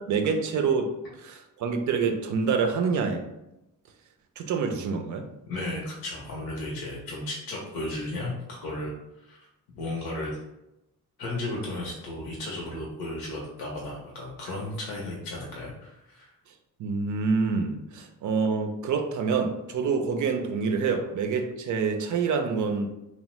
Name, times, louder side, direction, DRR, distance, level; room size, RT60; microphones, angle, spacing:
voice 1, 0.1-0.9 1.2-3.2 4.4-5.3 16.8-22.9, right 5 dB, 55° right, 5 dB, 0.4 m, -26 dB
voice 2, 5.5-8.9 9.2-9.5 9.7-10.3 11.2-16.3, left 2 dB, 85° left, -3 dB, 0.7 m, -34 dB
2.8 x 2.0 x 3.0 m, 0.90 s
cardioid pair, 90°, 35 cm